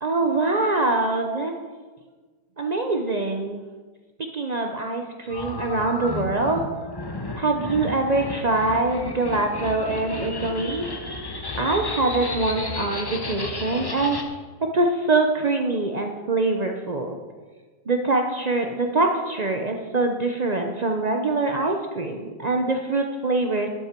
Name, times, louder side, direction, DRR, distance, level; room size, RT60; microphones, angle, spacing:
voice 1, 0.0-1.5 2.6-3.6 4.2-6.6 7.4-10.9 11.6-14.2 14.7-17.2 17.9-23.7, right 2 dB, 85° right, 3 dB, 0.3 m, -24 dB
sound 1, 5.2-14.2, left 2 dB, 25° left, 0.5 m, -33 dB
13.0 x 8.7 x 4.5 m, 1.4 s
omnidirectional pair, 1.9 m